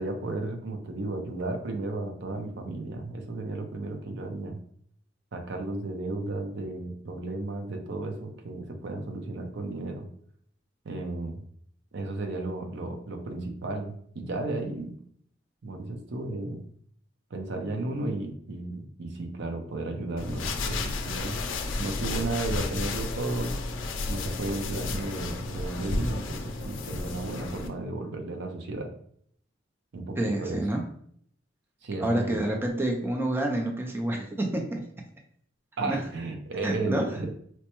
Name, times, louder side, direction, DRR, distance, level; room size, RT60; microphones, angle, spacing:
voice 1, 0.0-4.6 5.3-10.1 10.8-11.4 11.9-14.9 15.6-16.6 17.3-21.4 21.8-23.5 24.1-28.9 29.9-30.6 31.8-32.4 35.8-37.3, right 2 dB, 65° right, 4 dB, 0.6 m, -34 dB
sound 1, 20.2-27.7, left 3 dB, 75° left, 0.4 m, -32 dB
voice 2, 30.2-30.8 32.0-34.8 35.8-36.0 36.6-37.0, right 1 dB, 10° right, 1 dB, 0.4 m, -28 dB
4.4 x 2.1 x 2.9 m, 0.63 s
head